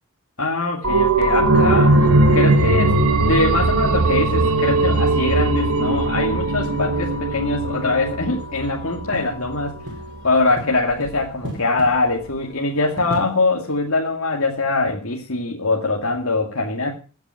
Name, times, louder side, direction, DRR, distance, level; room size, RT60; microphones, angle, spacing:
voice 1, 0.4-2.0 2.3-9.8 10.2-16.9, left 3 dB, 70° left, -1 dB, 2.4 m, -22 dB
sound 1, 0.8-10.2 10.6-10.7, right 2 dB, 75° right, 1.6 m, -19 dB
sound 2, 6.7-14.5, equal, 55° right, 4.8 m, -39 dB
15.5 x 9.2 x 5.8 m, 0.37 s
head